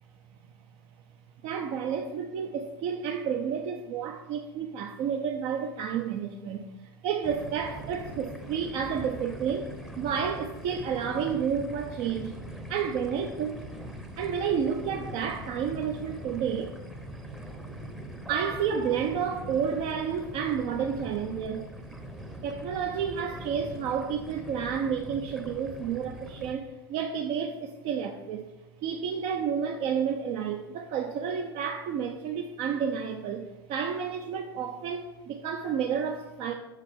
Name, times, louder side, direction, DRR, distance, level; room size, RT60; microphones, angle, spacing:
voice 1, 1.4-12.4 12.7-13.6 14.2-16.7 18.3-21.6 22.4-28.5 28.8-36.5, right 7 dB, 50° right, 3 dB, 0.6 m, -31 dB
sound 1, 7.2-26.5, right 1 dB, 5° right, 0.8 m, -42 dB
6.3 x 4.9 x 5.6 m, 1.0 s
hypercardioid pair, 90°, 13 cm